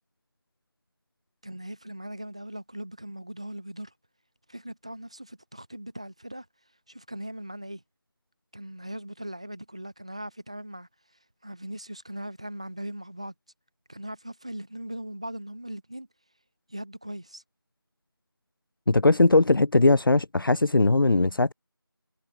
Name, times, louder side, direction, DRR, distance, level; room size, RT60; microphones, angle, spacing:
voice 1, 1.4-3.9 4.5-6.5 6.9-7.8 8.5-10.9 11.4-13.3 13.9-16.1 16.7-17.4, right 1 dB, 15° right, 1.7 m, -39 dB
voice 2, 18.9-21.5, left 2 dB, 65° left, 0.4 m, -20 dB
figure-of-eight pair, 175°, 12 cm